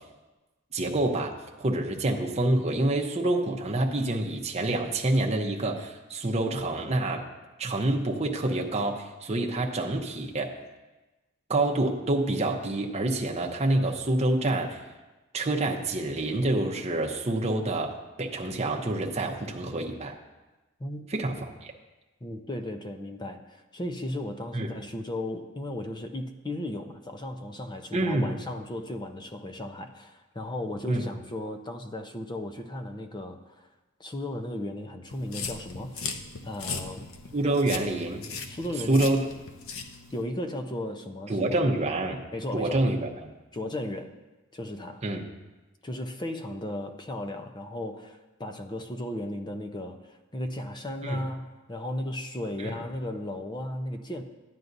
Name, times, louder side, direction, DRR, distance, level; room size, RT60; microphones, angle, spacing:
voice 1, 0.7-7.3 7.6-10.6 11.5-14.8 15.3-20.2 21.1-21.7 24.5-24.7 27.9-28.4 30.9-31.0 37.3-38.2 38.9-39.2 41.3-42.2 42.5-43.3 45.0-45.2 51.0-51.2 52.6-52.8, right 2 dB, 30° right, 0 dB, 0.8 m, -27 dB
voice 2, 20.8-21.1 22.2-33.7 34.0-37.1 38.5-39.1 40.1-41.6 42.3-42.9 43.5-44.1 44.5-45.0 45.8-54.2, left 1 dB, 20° left, 6 dB, 0.6 m, -36 dB
sound 1, 35.1-40.2, left 5 dB, 85° left, 0.8 m, -38 dB
13.5 x 9.3 x 2.6 m, 1.1 s
head